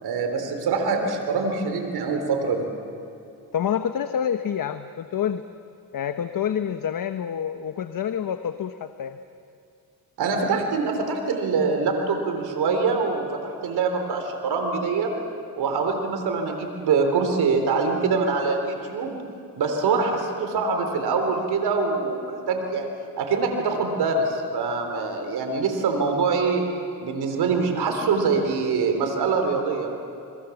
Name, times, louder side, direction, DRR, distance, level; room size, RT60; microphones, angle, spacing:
voice 1, 0.0-2.7 10.2-15.1 15.6-19.2 19.6-22.9 23.2-26.6 27.0-30.0, right 4 dB, 85° right, 4 dB, 3.7 m, -24 dB
voice 2, 3.5-5.4 5.9-9.2, left 8 dB, 60° left, 9 dB, 1.1 m, -27 dB
29.5 x 23.0 x 7.2 m, 2.7 s
cardioid pair, 75°, 37 cm